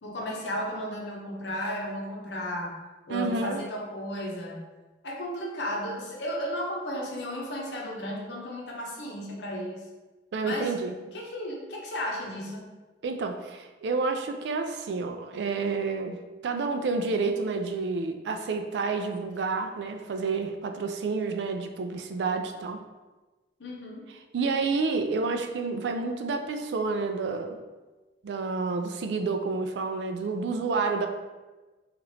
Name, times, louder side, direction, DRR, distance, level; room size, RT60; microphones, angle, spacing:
voice 1, 0.0-2.8 3.1-4.7 5.0-9.8 10.4-10.7 11.1-12.7 23.6-24.0, equal, 80° left, -2 dB, 0.8 m, -34 dB
voice 2, 3.1-3.6 10.3-11.0 13.0-22.8 24.3-27.6 28.2-31.1, right 4 dB, 75° right, 6 dB, 0.3 m, -29 dB
2.9 x 2.4 x 3.2 m, 1.2 s
head